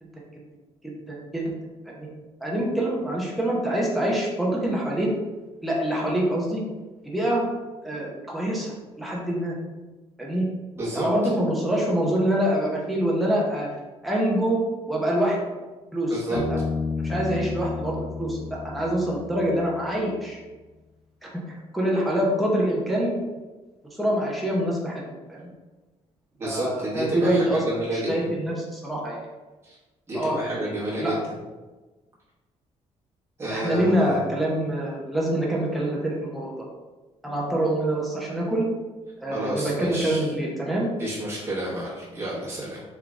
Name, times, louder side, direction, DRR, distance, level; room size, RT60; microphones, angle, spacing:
voice 1, 0.8-1.5 1.9-2.1 2.4-5.1 5.6-6.6 7.0-7.4 7.8-9.6 10.2-10.5 10.9-13.7 14.0-14.6 14.9-15.4 15.9-16.6 17.0-20.4 21.2-23.2 24.0-25.0 25.3-25.5 26.4-27.6 27.9-29.2 30.1-30.7 31.0-31.1 33.5-36.5 37.2-38.7 39.2-40.9, right 1 dB, ahead, -4 dB, 0.7 m, -25 dB
voice 2, 10.8-11.1 16.1-16.4 26.4-28.1 29.6-29.8 30.1-31.2 33.4-34.2 39.3-40.3 41.0-42.8, right 1 dB, 20° right, -7 dB, 1.1 m, -30 dB
Bass guitar, 16.3-19.8, left 4 dB, 75° left, 0.6 m, -31 dB
3.6 x 3.4 x 3.6 m, 1.2 s
cardioid pair, 160°, 12 cm